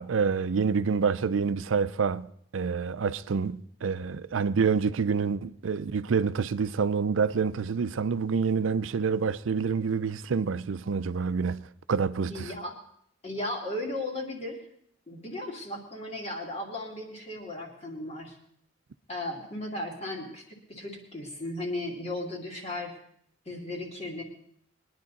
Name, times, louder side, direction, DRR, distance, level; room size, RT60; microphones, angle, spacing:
voice 1, 0.0-2.3 2.5-11.6 11.9-12.5, right 5 dB, 85° right, 0.5 m, -27 dB
voice 2, 12.3-12.8 13.2-14.6 15.1-18.4 19.1-22.9 23.5-24.2, left 1 dB, 35° left, 2.4 m, -36 dB
21.5 x 10.5 x 4.1 m
head